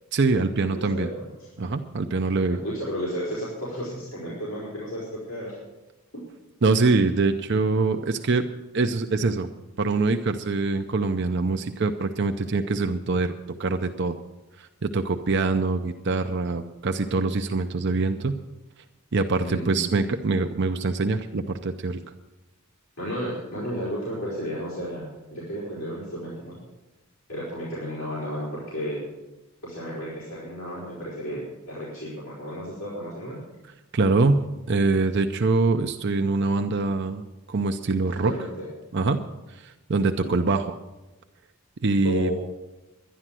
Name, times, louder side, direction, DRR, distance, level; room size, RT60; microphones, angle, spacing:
voice 1, 0.1-1.1 1.6-2.6 6.6-8.4 8.7-9.5 9.8-13.3 13.6-14.2 14.6-18.3 19.1-22.0 33.9-37.2 37.5-38.3 38.9-39.2 39.5-40.7 41.8-42.3, right 3 dB, 50° right, 6 dB, 0.6 m, -24 dB
voice 2, 0.6-1.3 2.5-5.6 19.4-20.1 23.0-26.6 27.3-29.0 29.6-33.4 38.2-38.7 40.2-40.4 42.0-42.3, equal, 65° left, -8 dB, 4.7 m, -33 dB
11.5 x 11.0 x 7.6 m, 1.1 s
head